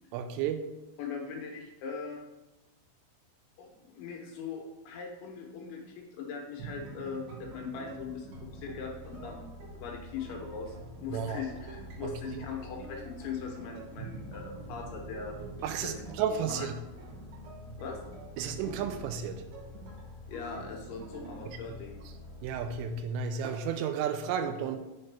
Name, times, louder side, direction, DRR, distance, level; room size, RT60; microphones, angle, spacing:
voice 1, 0.1-0.7 11.1-11.4 12.0-12.4 15.6-16.7 18.4-19.4 21.5-21.6 22.4-24.8, right 7 dB, 85° right, 8 dB, 3.0 m, -33 dB
voice 2, 1.0-2.2 3.6-8.3 8.5-10.7 11.0-15.4 15.8-16.0 16.5-16.7 17.8-18.0 20.3-22.1, left 5 dB, 75° left, 1 dB, 3.1 m, -40 dB
sound 1, 6.6-21.4, right 3 dB, 65° right, 2.5 m, -47 dB
sound 2, 8.3-23.0, left 3 dB, 50° left, 2.1 m, -49 dB
8.3 x 6.7 x 3.3 m, 1.0 s
omnidirectional pair, 5.9 m